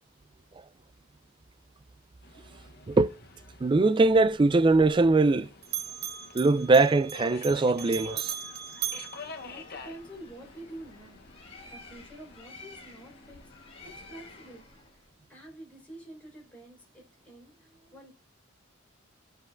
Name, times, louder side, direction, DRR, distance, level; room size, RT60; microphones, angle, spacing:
Subway metro underground, 2.2-14.6, left 4 dB, 50° left, 0.9 m, -49 dB
voice 1, 3.6-5.5 6.3-8.3, right 3 dB, 25° right, 0.3 m, -21 dB
Bell, 4.1-5.4 5.6-10.1, right 11 dB, 50° right, 0.8 m, -39 dB
Bird, 9.0-15.1, left 2 dB, 30° left, 2.1 m, -51 dB
voice 2, 9.4-18.1, right 1 dB, 5° left, 4.2 m, -48 dB
14.0 x 5.2 x 2.5 m
head